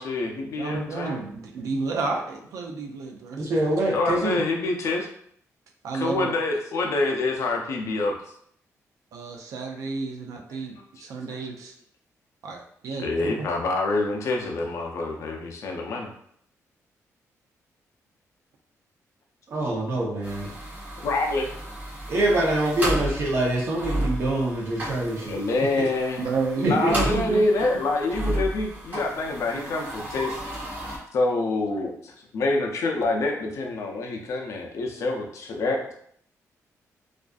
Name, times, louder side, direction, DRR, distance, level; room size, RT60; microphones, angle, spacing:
voice 1, 0.0-1.2 3.9-5.1 5.9-8.1 10.5-10.6 11.3-11.4 13.0-16.1 21.0-21.5 25.3-26.2 26.6-30.4 31.1-35.9, left 2 dB, 60° left, 1 dB, 0.5 m, -26 dB
voice 2, 0.6-3.4 5.8-6.3 9.1-11.7 12.4-13.5 26.2-27.4, right 4 dB, 70° right, 2 dB, 0.4 m, -31 dB
voice 3, 3.4-4.4 19.5-20.5 22.1-25.4 25.8-25.9 26.6-26.9, right 1 dB, 45° right, -3 dB, 0.7 m, -25 dB
sound 1, 20.2-31.0, right 1 dB, 30° right, 1.0 m, -33 dB
2.4 x 2.4 x 2.3 m, 0.66 s
wide cardioid pair, 165°, 6 cm